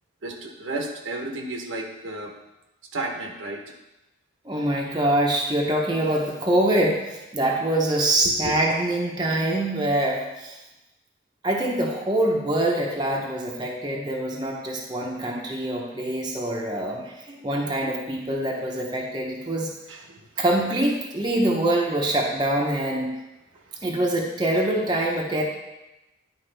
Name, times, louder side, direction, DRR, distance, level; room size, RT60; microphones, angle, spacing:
voice 1, 0.2-2.3 2.9-3.7 8.2-8.5 19.9-20.4 23.5-23.8, right 2 dB, 70° right, 2 dB, 1.0 m, -33 dB
voice 2, 4.4-10.6 11.4-19.7 20.4-23.1 23.8-25.4, right 1 dB, 20° right, -2 dB, 0.9 m, -24 dB
10.5 x 4.8 x 3.4 m, 0.98 s
head